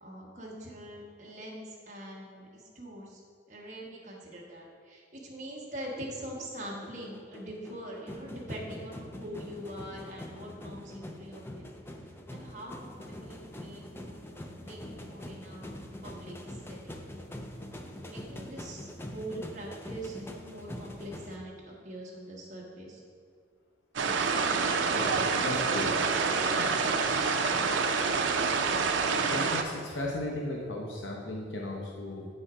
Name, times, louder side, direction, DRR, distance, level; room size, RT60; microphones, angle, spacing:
voice 1, 0.0-3.2 3.5-11.6 12.3-16.4 16.7-17.0 18.0-23.0 23.9-26.6, right 1 dB, 40° right, -3 dB, 1.3 m, -43 dB
sound 1, 6.0-21.4, left 1 dB, 10° left, 0.4 m, -44 dB
sound 2, 24.0-29.6, right 5 dB, 80° right, 0.5 m, -27 dB
voice 2, 24.9-25.9 26.6-26.8 28.6-28.9 29.3-32.3, left 1 dB, 80° left, -2 dB, 0.8 m, -36 dB
7.8 x 4.3 x 4.9 m, 2.1 s
head